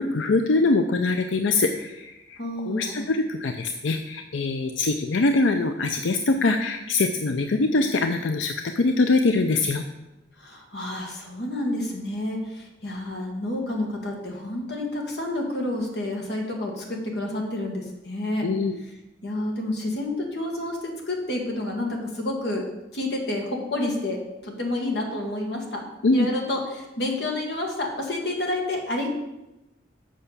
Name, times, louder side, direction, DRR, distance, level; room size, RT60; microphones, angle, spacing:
voice 1, 0.0-2.4 2.7-9.8 18.4-18.8 26.0-26.3, left 3 dB, 90° left, 6 dB, 0.5 m, -23 dB
voice 2, 2.4-3.1 10.4-18.5 19.2-22.7 22.9-25.8 26.1-29.1, left 1 dB, 60° left, 1 dB, 1.9 m, -29 dB
7.7 x 5.7 x 6.7 m, 0.96 s
head